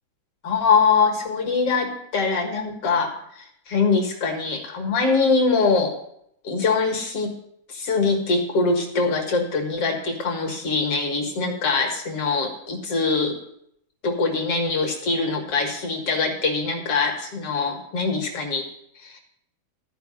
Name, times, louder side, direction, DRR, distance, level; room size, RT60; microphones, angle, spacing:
voice 1, 0.4-6.0 6.4-7.3 7.7-13.4 14.0-18.7 19.0-19.2, left 4 dB, 50° left, 2 dB, 1.9 m, -23 dB
14.0 x 5.1 x 7.5 m, 0.73 s
omnidirectional pair, 4.3 m